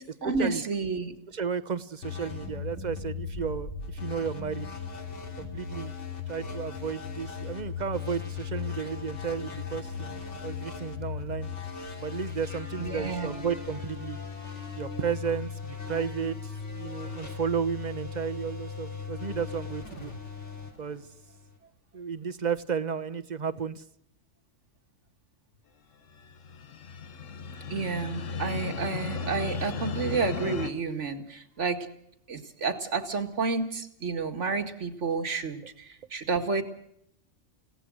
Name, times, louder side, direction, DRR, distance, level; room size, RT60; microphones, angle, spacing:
voice 1, 0.0-1.2 12.8-13.3 27.7-31.9 32.3-36.6, right 4 dB, 70° right, 7 dB, 2.3 m, -30 dB
voice 2, 1.3-4.7 5.4-5.9 6.3-11.5 12.0-14.2 14.8-20.1 20.8-21.1 21.9-23.8, right 6 dB, 40° right, 11 dB, 1.1 m, -33 dB
sound 1, 2.0-21.6, left 6 dB, 70° left, 3.7 m, -38 dB
sound 2, 26.2-30.7, left 5 dB, 90° left, 1.5 m, -35 dB
29.5 x 17.0 x 6.4 m, 0.73 s
omnidirectional pair, 1.3 m